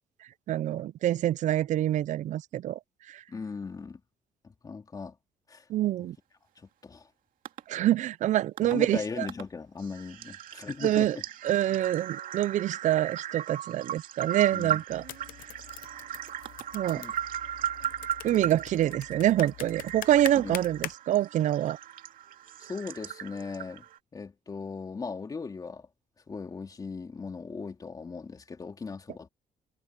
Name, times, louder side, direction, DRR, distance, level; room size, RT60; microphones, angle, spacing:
voice 1, 0.5-2.8 3.1-3.2 5.7-6.2 7.7-9.3 10.8-11.2 11.4-15.0 16.7-17.0 18.2-21.8, right 13 dB, 60° right, 0.4 m, -26 dB
voice 2, 3.3-4.0 4.4-5.2 5.5-5.7 6.6-7.1 8.6-11.2 14.5-14.8 16.9-17.1 18.3-18.5 20.4-20.6 22.6-23.8 24.1-25.9 26.3-29.3, left 4 dB, 25° left, 3.0 m, -38 dB
sound 1, 7.5-7.6 8.6-8.7 9.3-9.4 9.8-24.0, right 10 dB, 75° right, 2.4 m, -37 dB
sound 2, 14.9-20.9, left 14 dB, 80° left, 0.8 m, -43 dB
cardioid pair, 140°, 14 cm